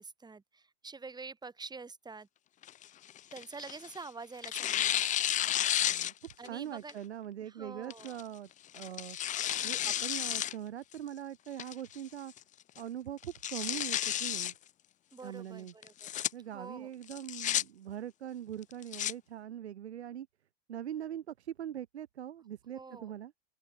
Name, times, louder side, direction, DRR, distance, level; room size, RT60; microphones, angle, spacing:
voice 1, 0.0-2.3 3.3-5.1 6.4-7.0 7.4-8.2 15.1-16.1 16.5-16.9 22.7-23.1, right 4 dB, 10° right, 7.9 m, -47 dB
Tearing, 2.6-4.0 4.4-6.5 6.9-7.0 7.9-8.2 8.7-10.5 10.9-11.0 11.6-12.0 12.4-12.5 12.8-12.9 13.2-14.5 15.8-16.3 17.1-17.6 18.6-19.1, left 11 dB, 25° left, 0.8 m, -32 dB
voice 2, 5.8-8.5 8.7-9.2 9.6-12.3 12.8-14.5 15.2-15.7 16.3-20.3 20.7-23.3, right 10 dB, 75° right, 7.8 m, -42 dB
open air
hypercardioid pair, 105°, 33 cm